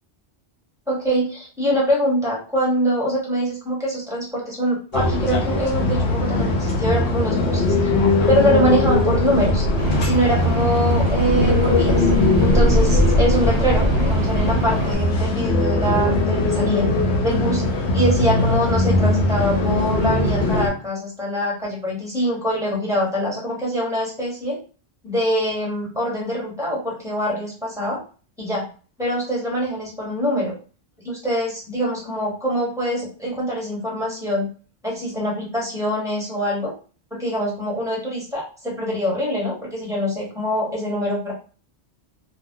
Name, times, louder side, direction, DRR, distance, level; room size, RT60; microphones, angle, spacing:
voice 1, 0.9-7.7 8.3-9.6 10.0-12.1 12.4-16.9 17.2-17.6 17.9-24.6 25.0-28.0 28.4-28.7 29.0-30.5 31.0-34.5 34.8-36.7 37.1-41.3, equal, 5° right, -4 dB, 1.2 m, -24 dB
sound 1, 4.9-20.7, left 2 dB, 85° left, 1.0 m, -20 dB
sound 2, 9.8-14.9, right 2 dB, 65° right, 0.8 m, -26 dB
2.3 x 2.3 x 3.6 m, 0.37 s
omnidirectional pair, 1.1 m